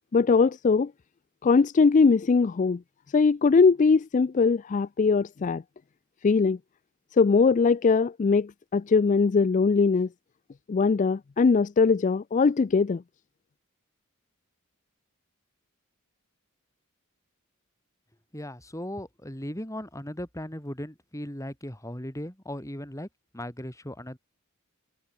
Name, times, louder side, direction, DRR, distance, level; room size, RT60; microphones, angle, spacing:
voice 1, 0.1-0.9 1.4-2.8 3.1-5.6 6.2-6.6 7.2-10.1 10.7-13.0, left 4 dB, 35° left, 0.3 m, -21 dB
voice 2, 18.3-23.1 23.3-24.2, left 1 dB, 15° left, 3.7 m, -37 dB
head